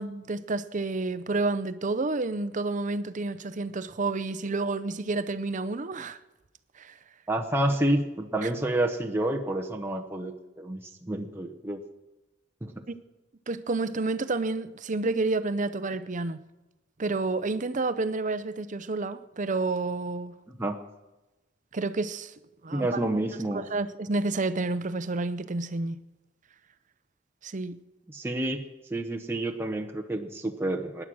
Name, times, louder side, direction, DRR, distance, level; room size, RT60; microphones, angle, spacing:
voice 1, 0.0-6.2 6.8-7.0 8.4-8.5 13.5-16.4 17.0-20.4 21.7-22.3 22.6-23.0 23.5-26.0 27.4-27.8, right 3 dB, 45° right, 0.7 m, -30 dB
voice 2, 7.3-11.8 12.6-12.8 20.6-20.8 22.7-23.7 28.1-28.6 28.9-31.0, right 1 dB, 15° right, 0.9 m, -29 dB
18.5 x 10.0 x 6.2 m
head